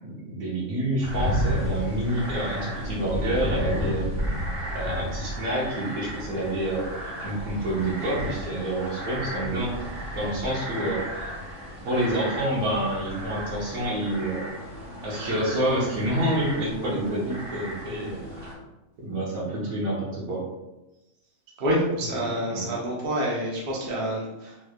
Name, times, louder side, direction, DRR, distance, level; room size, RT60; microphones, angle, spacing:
voice 1, 0.0-4.1 4.7-9.8 10.1-11.3 11.8-14.5 15.0-18.2 19.0-20.4 22.5-22.7, right 1 dB, 85° right, -5 dB, 1.5 m, -28 dB
sound 1, 1.0-18.5, equal, 25° right, 1.2 m, -33 dB
voice 2, 21.6-24.6, right 1 dB, 50° right, -4 dB, 0.9 m, -27 dB
3.3 x 3.2 x 2.4 m, 0.99 s
omnidirectional pair, 1.4 m